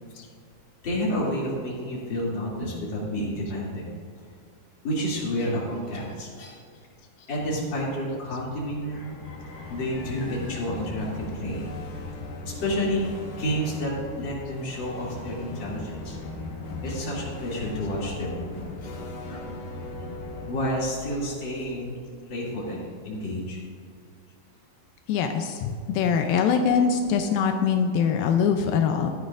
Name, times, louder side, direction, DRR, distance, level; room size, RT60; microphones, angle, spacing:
voice 1, 0.8-3.9 4.8-6.6 7.3-11.7 12.4-16.2 16.8-19.4 20.4-22.0 22.3-23.6, equal, 30° left, -5 dB, 2.7 m, -30 dB
sound 1, 8.4-22.4, left 2 dB, 65° left, 3.0 m, -38 dB
voice 2, 25.1-29.1, left 6 dB, 90° left, 5 dB, 2.1 m, -23 dB
14.5 x 10.5 x 2.5 m, 2.2 s
omnidirectional pair, 4.9 m